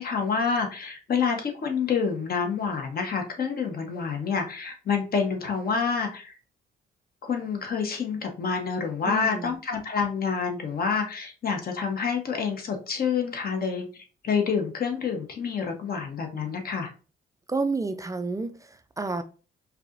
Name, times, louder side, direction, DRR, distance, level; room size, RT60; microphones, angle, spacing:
voice 1, 0.0-6.3 7.2-16.9, left 6 dB, 50° left, 1.0 m, -28 dB
voice 2, 9.1-9.5 17.5-18.5 19.0-19.2, right 3 dB, 15° right, 0.4 m, -29 dB
4.6 x 2.8 x 2.6 m
cardioid pair, 90°, 20 cm